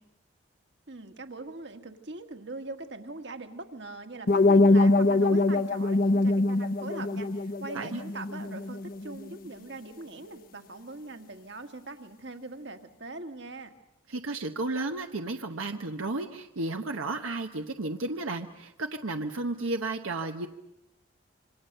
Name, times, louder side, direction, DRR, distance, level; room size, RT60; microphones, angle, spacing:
voice 1, 0.9-13.7, right 2 dB, 55° right, 6 dB, 1.9 m, -42 dB
sound 1, 4.3-9.2, left 2 dB, 45° left, 0.9 m, -23 dB
voice 2, 14.1-20.5, right 2 dB, 85° right, 5 dB, 1.1 m, -33 dB
27.0 x 25.5 x 6.8 m, 0.86 s
head